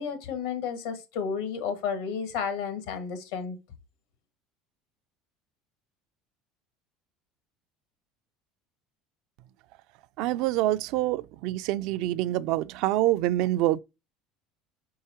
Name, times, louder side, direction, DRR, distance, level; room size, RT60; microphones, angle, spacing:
voice 1, 0.0-3.6, left 6 dB, 80° left, 1.8 m, -32 dB
voice 2, 10.2-13.8, right 15 dB, 70° right, 0.4 m, -26 dB
4.8 x 4.7 x 4.4 m
supercardioid pair, 115°, 0 cm